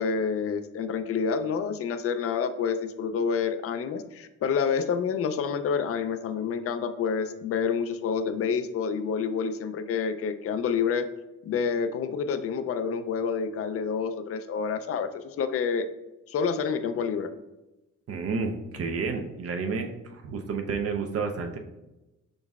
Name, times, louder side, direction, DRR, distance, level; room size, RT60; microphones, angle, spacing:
voice 1, 0.0-11.1 11.4-15.9 16.3-17.3, left 6 dB, 50° left, 10 dB, 0.4 m, -28 dB
voice 2, 18.1-21.6, right 4 dB, 50° right, 4 dB, 0.6 m, -30 dB
5.2 x 3.9 x 2.3 m, 0.99 s
cardioid pair, 90°, 30 cm